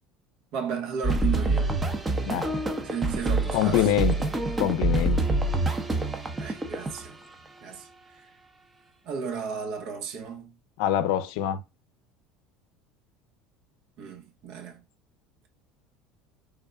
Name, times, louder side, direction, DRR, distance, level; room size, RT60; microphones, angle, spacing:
voice 1, 0.5-1.7 2.8-3.9 6.4-7.1 7.6-7.9 8.2-8.3 9.0-10.5 14.0-14.8, right 6 dB, 65° right, 0.8 m, -34 dB
sound 1, 1.0-7.1, right 2 dB, 20° right, 0.6 m, -26 dB
voice 2, 2.3-2.6 3.5-4.3 4.6-5.2 10.8-11.6, left 11 dB, 75° left, 0.4 m, -25 dB
3.5 x 2.2 x 3.5 m
supercardioid pair, 110°, 0 cm